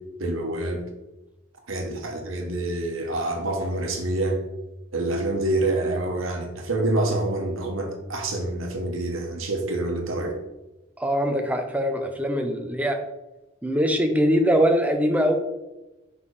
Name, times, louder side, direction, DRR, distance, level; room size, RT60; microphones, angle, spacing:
voice 1, 0.2-0.8 1.7-4.4 4.9-10.4, right 2 dB, 75° right, 3 dB, 1.3 m, -27 dB
voice 2, 11.0-13.0 13.6-15.4, equal, 5° right, 5 dB, 0.6 m, -22 dB
5.3 x 4.6 x 4.9 m, 1.0 s
head